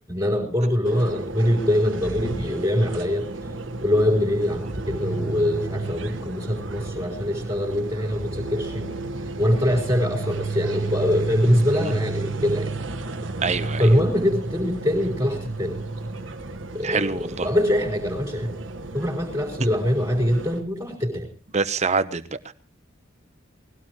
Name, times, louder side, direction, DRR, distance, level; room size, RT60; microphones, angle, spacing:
voice 1, 0.1-3.3 3.8-8.9 9.4-12.7 13.8-15.8 16.7-18.6 18.9-21.3, left 1 dB, 20° right, 4.2 m, -23 dB
sound 1, 0.8-20.6, right 3 dB, 70° right, 1.6 m, -32 dB
voice 2, 13.4-13.9 16.8-17.5 21.5-22.5, right 4 dB, 35° right, 1.0 m, -25 dB
21.0 x 16.5 x 3.1 m
head